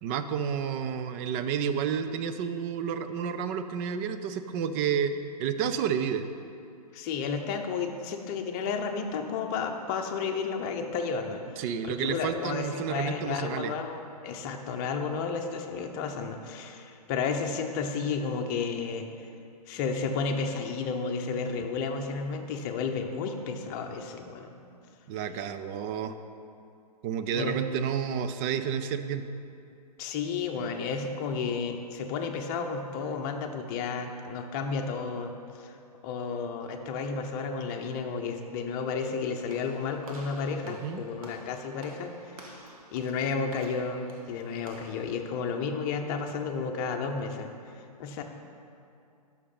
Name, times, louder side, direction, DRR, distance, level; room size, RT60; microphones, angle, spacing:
voice 1, 0.0-6.3 11.6-13.7 25.1-26.2 27.0-29.2 40.7-41.0, right 7 dB, 20° right, 10 dB, 0.4 m, -30 dB
voice 2, 6.9-19.1 19.7-24.5 27.3-27.6 30.0-35.7 36.0-42.6 42.9-48.2, left 5 dB, 30° left, 4 dB, 0.8 m, -32 dB
Walk footsteps / Slam, 39.5-45.0, right 2 dB, 60° right, 1.5 m, -50 dB
9.8 x 6.5 x 5.4 m, 2.5 s
figure-of-eight pair, 125°, 21 cm